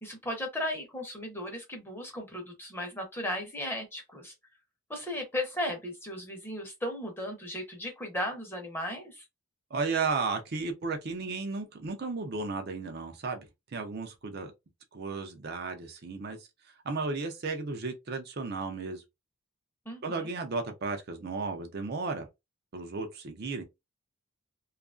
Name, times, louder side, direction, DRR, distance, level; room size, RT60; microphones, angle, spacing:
voice 1, 0.0-4.3 4.9-9.2 19.9-20.3, left 1 dB, 10° left, 0.7 m, -36 dB
voice 2, 9.7-13.5 13.7-14.5 14.9-16.5 16.8-19.0 20.0-22.3 22.7-23.6, right 4 dB, 45° right, 0.5 m, -34 dB
2.8 x 2.4 x 2.4 m
head